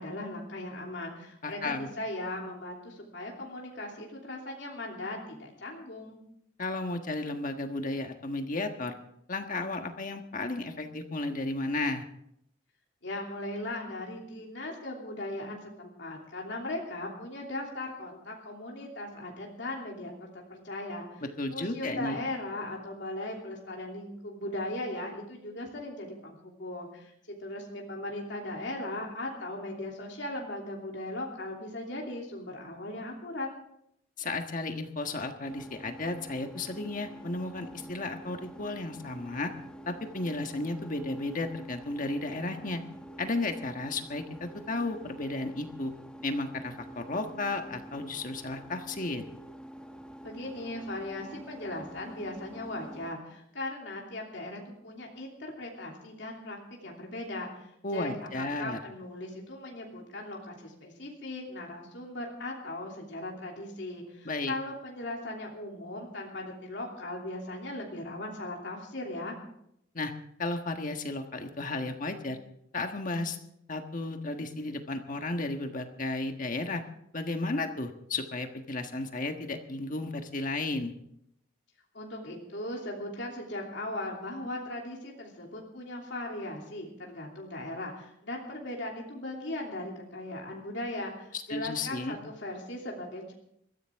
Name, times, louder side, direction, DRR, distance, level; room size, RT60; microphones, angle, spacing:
voice 1, 0.0-6.2 13.0-21.2 21.5-33.5 50.2-56.6 56.8-69.4 81.9-93.3, left 1 dB, 65° left, -1 dB, 3.0 m, -38 dB
voice 2, 1.4-1.9 6.6-8.9 9.3-12.1 21.2-22.2 34.2-39.5 39.9-42.8 43.2-45.9 46.2-49.2 57.8-58.8 64.2-64.5 69.9-70.1 70.4-72.4 72.7-73.4 73.7-76.8 77.1-80.9 91.5-92.2, left 2 dB, 45° left, 5 dB, 1.5 m, -33 dB
sound 1, 35.4-53.1, right 1 dB, 5° left, 1.0 m, -47 dB
21.5 x 15.0 x 3.6 m, 0.75 s
head